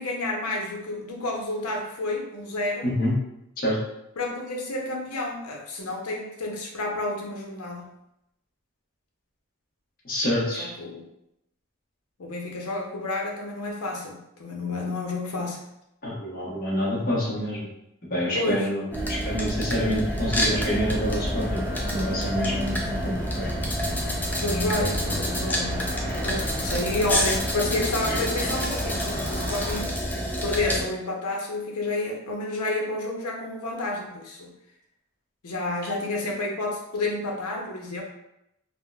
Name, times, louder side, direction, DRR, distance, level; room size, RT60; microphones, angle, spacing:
voice 1, 0.0-2.9 4.2-8.0 10.6-11.0 12.2-15.6 18.3-18.7 24.4-25.8 26.2-30.0 30.4-34.5 35.4-38.0, left 2 dB, 90° left, 0 dB, 0.7 m, -30 dB
voice 2, 2.8-3.1 3.6-3.8 10.0-10.7 16.0-17.7 18.1-18.8 19.1-21.6 21.9-23.5 28.1-28.2, equal, 40° left, -5 dB, 0.8 m, -27 dB
sound 1, 18.9-30.8, equal, 10° left, 0.3 m, -28 dB
sound 2, 20.2-29.8, equal, 60° right, 0.7 m, -34 dB
3.6 x 2.0 x 2.2 m, 0.83 s
head